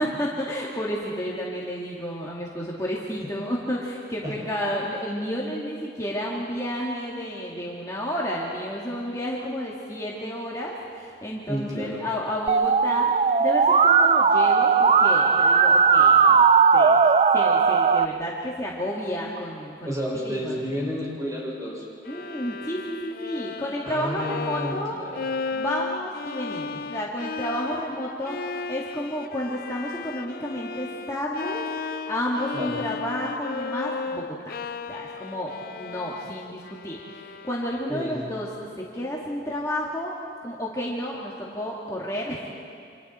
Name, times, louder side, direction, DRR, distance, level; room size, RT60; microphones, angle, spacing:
voice 1, 0.0-13.1 13.4-16.5 16.7-17.0 17.3-20.0 20.2-20.6 22.1-25.0 25.5-34.6 34.9-38.5 38.8-42.5, equal, 20° left, -4 dB, 2.1 m, -31 dB
voice 2, 11.5-12.0 19.8-21.8 23.8-25.3 32.5-32.8 37.9-38.2, equal, 20° right, -3 dB, 5.9 m, -31 dB
Musical instrument, 12.5-18.0, right 5 dB, 35° right, 0.5 m, -18 dB
Bowed string instrument, 22.0-38.1, left 4 dB, 55° left, 0.5 m, -35 dB
28.0 x 26.5 x 4.4 m, 2.3 s
head